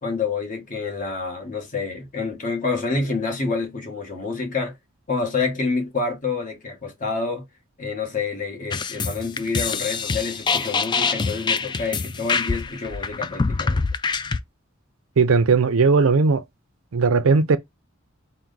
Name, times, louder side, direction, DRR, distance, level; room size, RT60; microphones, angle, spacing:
voice 1, 0.0-4.8 5.1-7.4 7.8-13.9, left 4 dB, 40° left, 1.3 m, -28 dB
sound 1, 8.7-14.4, left 4 dB, 20° left, 0.3 m, -25 dB
voice 2, 15.2-16.4 16.9-17.6, right 4 dB, 70° right, 0.5 m, -17 dB
4.5 x 2.1 x 3.8 m
head